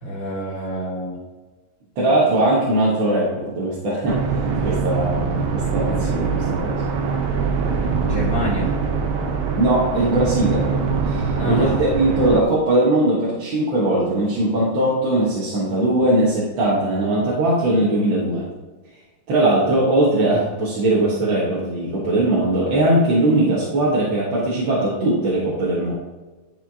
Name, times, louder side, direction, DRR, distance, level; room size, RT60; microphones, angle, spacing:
voice 1, 0.0-1.2 8.0-8.8 11.4-11.8, right 1 dB, 40° left, -4 dB, 2.2 m, -27 dB
voice 2, 2.0-4.2 4.6-6.8 9.6-10.7 11.0-18.5 19.3-25.9, right 1 dB, 70° right, -6 dB, 2.2 m, -20 dB
sound 1, 4.1-12.4, right 5 dB, 90° right, 1.7 m, -23 dB
11.0 x 4.7 x 2.8 m, 1.2 s
omnidirectional pair, 2.2 m